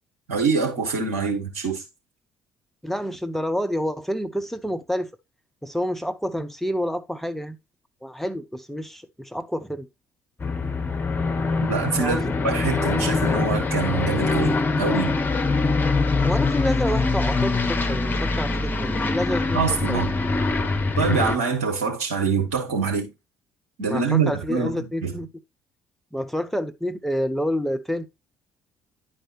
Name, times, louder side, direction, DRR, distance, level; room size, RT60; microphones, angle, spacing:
voice 1, 0.3-1.8 11.6-15.1 19.5-20.1 21.0-23.1 23.8-25.1, right 5 dB, 75° right, 1.5 m, -25 dB
voice 2, 2.8-5.1 5.6-7.6 8.0-9.9 12.0-12.3 16.2-20.0 23.9-25.3 26.1-28.1, equal, 5° left, 0.5 m, -28 dB
Aircraft, 10.4-21.4, left 3 dB, 25° left, 0.9 m, -23 dB
10.0 x 4.3 x 3.0 m
figure-of-eight pair, 50°, 8 cm